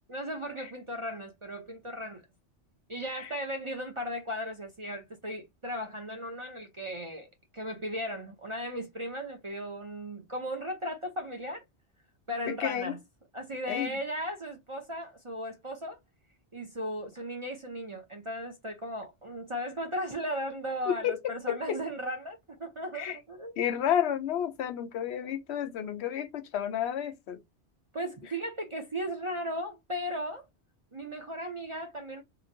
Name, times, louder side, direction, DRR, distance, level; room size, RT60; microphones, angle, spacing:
voice 1, 0.1-2.3 2.9-11.6 12.3-13.0 13.3-16.0 16.5-23.6 27.9-30.5 30.9-32.2, equal, 35° right, 0.5 m, -36 dB
voice 2, 12.4-13.0 13.7-13.9 20.9-21.8 22.9-23.2 23.6-27.4, left 9 dB, 70° left, 0.8 m, -31 dB
2.9 x 2.5 x 2.5 m
omnidirectional pair, 1.2 m